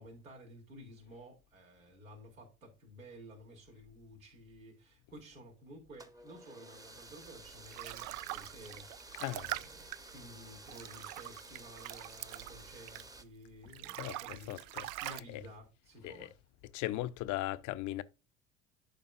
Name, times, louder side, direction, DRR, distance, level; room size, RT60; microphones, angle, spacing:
voice 1, 0.0-14.6 15.0-16.3, equal, 80° right, 3.2 m, -53 dB
sound 1, 5.9-13.2, right 2 dB, 10° right, 0.9 m, -53 dB
sound 2, 7.2-13.3 13.6-15.2, right 17 dB, 50° right, 0.5 m, -44 dB
voice 2, 9.2-9.5 14.0-15.4 16.0-16.3 16.7-18.0, left 16 dB, 45° left, 0.7 m, -38 dB
11.5 x 5.2 x 2.5 m
figure-of-eight pair, 65°, 40 cm